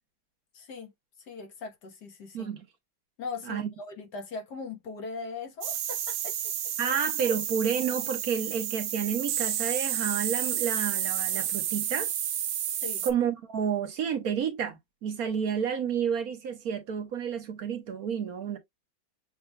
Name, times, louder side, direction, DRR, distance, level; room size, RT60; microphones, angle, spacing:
voice 1, 0.5-0.9 1.2-2.5 3.2-6.5 6.8-7.0 12.8-13.1, left 4 dB, 60° left, 1.7 m, -40 dB
sound 1, 5.6-13.1, right 10 dB, 80° right, 1.5 m, -31 dB
voice 2, 6.8-12.1 13.0-18.6, right 7 dB, 55° right, 1.3 m, -30 dB
6.8 x 2.9 x 2.2 m
omnidirectional pair, 2.1 m